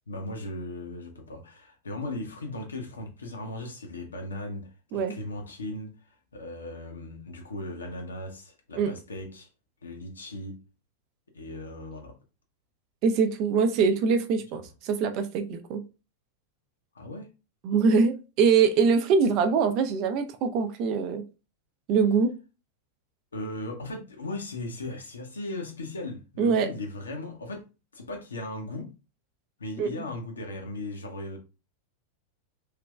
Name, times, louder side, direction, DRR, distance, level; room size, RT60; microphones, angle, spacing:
voice 1, 0.1-9.5 9.8-10.6 11.3-12.1 16.9-17.3 23.3-27.6 27.9-28.9 29.6-31.4, left 2 dB, 75° left, 0.8 m, -37 dB
voice 2, 13.0-15.8 17.6-21.2 21.9-22.3 26.4-26.7 29.8-29.9, right 5 dB, 40° right, 0.5 m, -23 dB
3.3 x 2.9 x 2.3 m
figure-of-eight pair, 90°, 0 cm